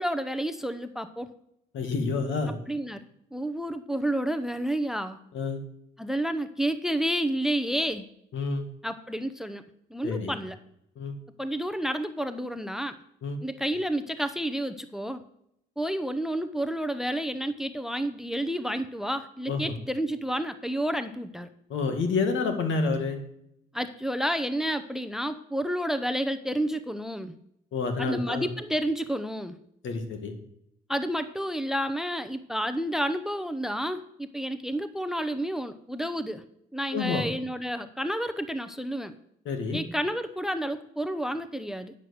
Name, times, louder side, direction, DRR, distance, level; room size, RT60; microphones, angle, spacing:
voice 1, 0.0-1.3 2.7-3.1 3.3-5.2 6.0-8.1 8.8-9.6 9.9-10.6 11.4-13.0 13.4-15.2 15.8-21.5 23.7-27.3 28.0-29.6 30.9-36.4 36.7-39.1 39.7-41.9, equal, ahead, 11 dB, 0.6 m, -30 dB
voice 2, 1.7-2.6 5.3-5.6 8.3-8.7 10.0-10.3 11.0-11.2 13.2-13.4 19.5-19.7 21.7-23.2 27.7-28.5 29.8-30.3 36.9-37.3 39.5-39.8, left 4 dB, 75° left, 5 dB, 1.9 m, -28 dB
9.4 x 7.5 x 6.4 m, 0.74 s
cardioid pair, 90°, 20 cm